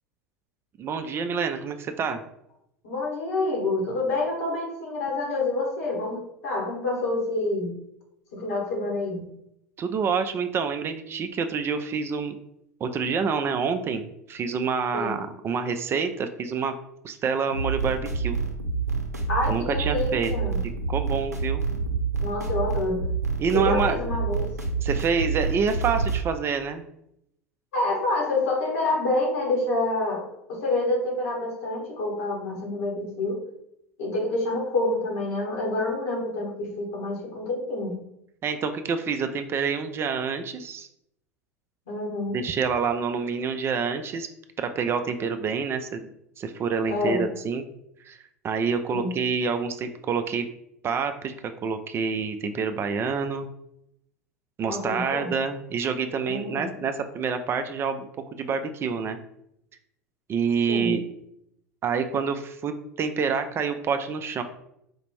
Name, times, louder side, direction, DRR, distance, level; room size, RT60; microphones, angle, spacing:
voice 1, 0.8-2.2 9.8-12.4 12.8-16.7 17.0-18.4 19.5-20.3 20.9-21.6 23.4-24.0 24.8-26.8 38.4-40.9 42.3-44.3 44.6-46.1 46.4-47.6 48.0-50.5 50.8-51.3 51.6-53.5 54.6-58.1 58.4-59.2 60.3-61.0 61.8-64.4, right 5 dB, 30° right, 8 dB, 0.4 m, -27 dB
voice 2, 2.8-7.7 8.3-9.3 14.9-15.2 19.3-20.6 22.2-23.0 23.5-24.5 27.7-33.4 34.0-37.9 41.9-42.4 46.9-47.2 48.9-49.1 54.6-55.3 56.2-56.7 60.7-61.0, left 2 dB, 65° left, -1 dB, 1.4 m, -27 dB
sound 1, 17.5-26.2, right 4 dB, 90° right, 0.6 m, -28 dB
4.3 x 2.4 x 3.1 m, 0.76 s
figure-of-eight pair, 75°, 9 cm